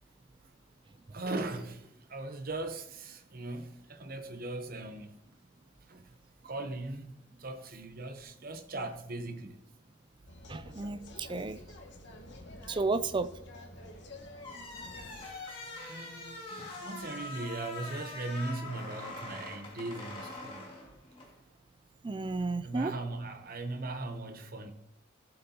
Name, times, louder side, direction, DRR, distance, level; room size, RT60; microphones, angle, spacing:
voice 1, 1.1-5.1 5.9-6.1 6.4-9.6 15.8-20.7 22.6-24.7, right 2 dB, 45° right, 0.9 m, -39 dB
sound 1, 10.3-15.3, left 1 dB, 55° left, 1.4 m, -49 dB
voice 2, 10.5-11.6 12.7-13.3 22.0-22.9, right 3 dB, 25° right, 0.3 m, -32 dB
sound 2, 14.4-21.3, left 2 dB, 25° left, 2.1 m, -43 dB
15.5 x 7.8 x 2.9 m
head